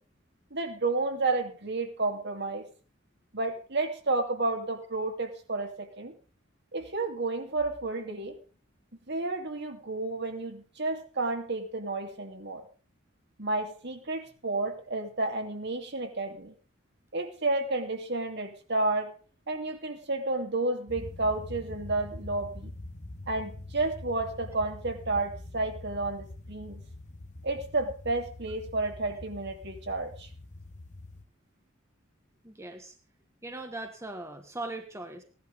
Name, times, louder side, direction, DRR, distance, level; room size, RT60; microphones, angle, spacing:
voice 1, 0.5-2.6 3.3-6.1 6.7-8.4 9.1-12.6 13.4-16.5 17.1-19.1 19.5-22.7 23.3-26.8 27.4-30.3, right 2 dB, 55° right, 5 dB, 2.6 m, -31 dB
sound 1, 20.9-31.2, left 2 dB, 35° left, 1.2 m, -44 dB
voice 2, 32.4-32.9 33.4-35.2, right 2 dB, 15° right, 5 dB, 1.4 m, -39 dB
17.0 x 11.0 x 5.1 m, 0.37 s
head